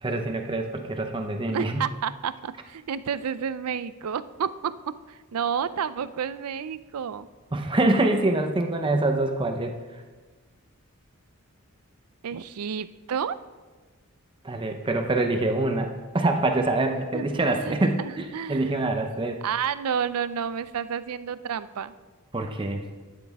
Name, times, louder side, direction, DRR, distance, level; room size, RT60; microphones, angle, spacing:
voice 1, 0.0-1.8 7.5-10.0 14.4-19.4 22.3-22.8, right 2 dB, 20° right, 4 dB, 0.6 m, -25 dB
voice 2, 1.5-4.7 5.1-7.3 12.2-13.4 17.1-17.3 17.6-18.7 19.4-21.9, right 7 dB, 85° right, 14 dB, 0.5 m, -30 dB
11.5 x 9.4 x 3.5 m, 1.3 s
head